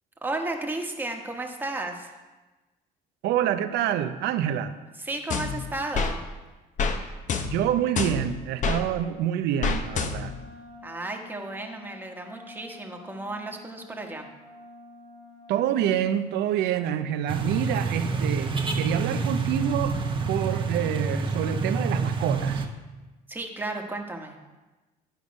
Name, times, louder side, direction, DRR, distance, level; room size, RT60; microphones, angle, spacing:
voice 1, 0.2-2.2 5.0-6.2 10.8-14.3 23.3-24.4, right 2 dB, 10° right, 2 dB, 1.2 m, -33 dB
voice 2, 3.2-4.7 7.5-10.3 15.5-20.0 20.3-22.7, right 10 dB, 80° right, 11 dB, 0.6 m, -27 dB
sound 1, 5.3-6.2 6.8-7.0 7.3-8.8 9.6-10.4, left 5 dB, 45° left, 0.8 m, -28 dB
Wind instrument woodwind instrument, 10.1-16.1, left 3 dB, 75° left, 3.1 m, -49 dB
sound 2, 17.3-22.7, right 4 dB, 30° right, 0.9 m, -28 dB
10.5 x 5.3 x 5.2 m, 1.2 s
cardioid pair, 110°, 17 cm